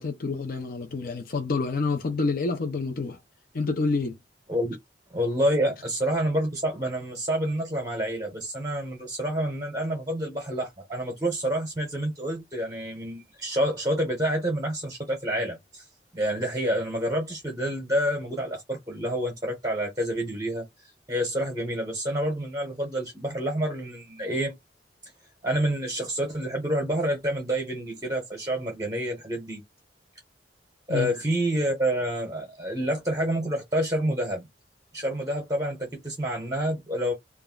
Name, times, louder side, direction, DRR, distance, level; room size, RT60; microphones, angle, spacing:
voice 1, 0.0-3.2 3.5-4.2 30.9-31.1, left 3 dB, 55° left, 0.5 m, -28 dB
voice 2, 5.1-15.8 16.1-20.6 21.1-24.6 25.4-29.6 30.9-34.5 34.9-37.2, right 1 dB, 20° right, 0.8 m, -28 dB
2.4 x 2.0 x 3.6 m
head